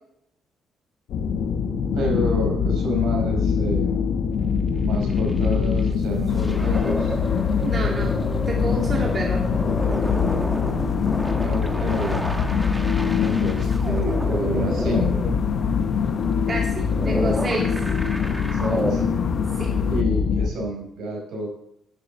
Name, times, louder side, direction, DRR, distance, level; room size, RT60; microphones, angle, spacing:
sound 1, 1.1-20.5, left 6 dB, 80° left, 1.5 m, -23 dB
voice 1, 1.9-4.0 4.8-7.1 11.4-12.2 13.0-15.4 18.5-19.0 19.9-21.5, equal, 80° right, 0 dB, 5.4 m, -29 dB
sound 2, 4.9-5.9 6.4-19.6, equal, 5° right, 1.5 m, -32 dB
sound 3, 6.3-20.0, left 6 dB, 45° left, 0.8 m, -38 dB
voice 2, 7.6-8.2 8.5-9.5 16.5-17.8 19.6-19.7, right 2 dB, 40° right, -1 dB, 2.3 m, -29 dB
11.0 x 7.4 x 6.6 m, 0.76 s
cardioid pair, 90°, 0 cm